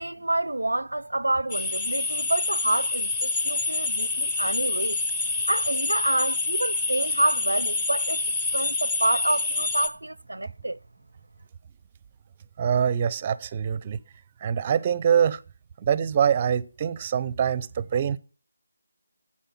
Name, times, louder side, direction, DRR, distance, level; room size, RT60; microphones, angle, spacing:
voice 1, 0.0-5.0 5.5-8.2 8.5-10.8, right 2 dB, 85° right, 0.4 m, -28 dB
sound 1, 1.5-9.9, left 3 dB, 15° left, 0.8 m, -27 dB
voice 2, 12.6-14.0 14.4-15.4 15.8-18.2, right 8 dB, 25° right, 0.5 m, -24 dB
10.0 x 7.6 x 7.2 m
figure-of-eight pair, 165°, 0 cm